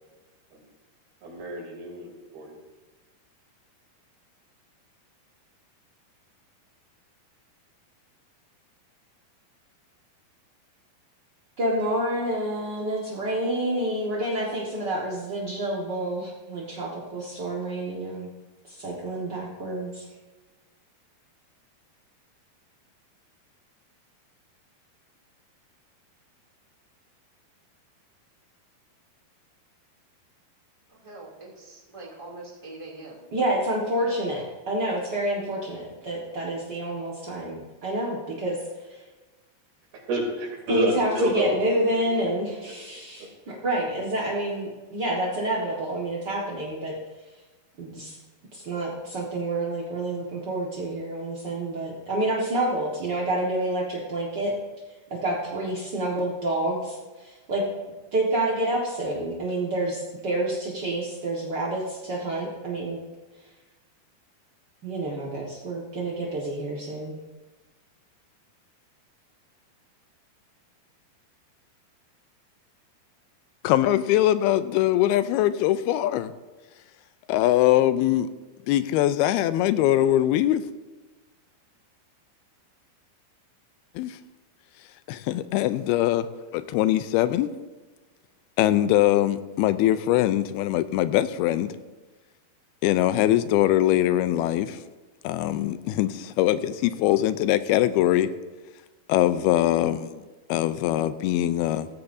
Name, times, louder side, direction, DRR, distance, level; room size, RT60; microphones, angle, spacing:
voice 1, 1.2-2.5 40.1-42.3, right 1 dB, 75° right, -1 dB, 4.8 m, -29 dB
voice 2, 11.6-18.3 18.7-20.1 33.3-38.6 38.8-39.0 40.7-46.9 47.8-48.2 48.5-54.5 55.1-57.6 58.1-63.0 64.8-67.2, right 1 dB, 55° right, -4 dB, 1.2 m, -28 dB
voice 3, 30.9-33.2 34.3-34.4, right 2 dB, 10° right, -3 dB, 2.0 m, -43 dB
voice 4, 73.6-76.3 77.3-78.3 78.7-80.6 84.0-84.2 85.1-86.3 86.5-87.5 88.6-91.7 92.8-94.8 95.2-98.3 99.1-100.2 100.5-101.9, left 13 dB, 85° left, 13 dB, 2.5 m, -22 dB
16.5 x 15.0 x 2.7 m, 1.2 s
omnidirectional pair, 4.5 m